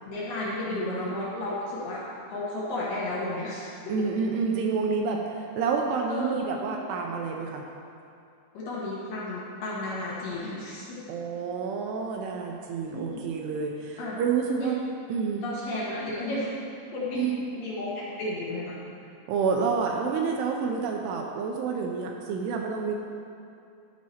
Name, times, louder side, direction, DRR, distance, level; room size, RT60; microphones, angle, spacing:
voice 1, 0.0-2.0 2.3-3.7 6.1-6.4 8.5-11.1 12.9-13.2 14.0-14.2 14.6-14.7 15.4-16.5 16.9-17.3 17.6-18.8, left 2 dB, 65° left, -7 dB, 2.6 m, -33 dB
voice 2, 0.7-1.2 3.9-7.6 11.1-14.8 15.1-15.4 17.2-17.4 19.3-23.0, right 5 dB, 80° right, 1 dB, 2.5 m, -29 dB
12.5 x 4.7 x 4.2 m, 2.6 s
omnidirectional pair, 5.0 m